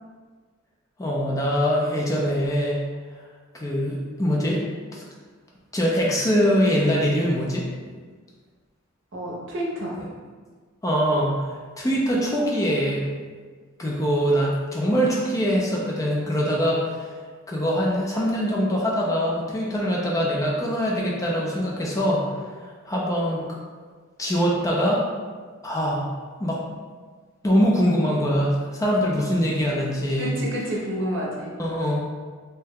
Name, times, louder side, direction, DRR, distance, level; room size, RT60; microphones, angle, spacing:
voice 1, 1.0-2.8 3.5-4.6 4.9-5.0 5.7-7.7 10.8-13.1 13.8-17.1 17.5-22.3 22.6-23.6 24.2-25.0 25.6-26.1 26.4-26.6 27.4-30.3 31.6-32.0, equal, 15° left, -3 dB, 0.3 m, -23 dB
voice 2, 9.1-10.0 30.2-31.6, equal, 60° right, -3 dB, 0.7 m, -29 dB
2.7 x 2.1 x 3.5 m, 1.5 s
head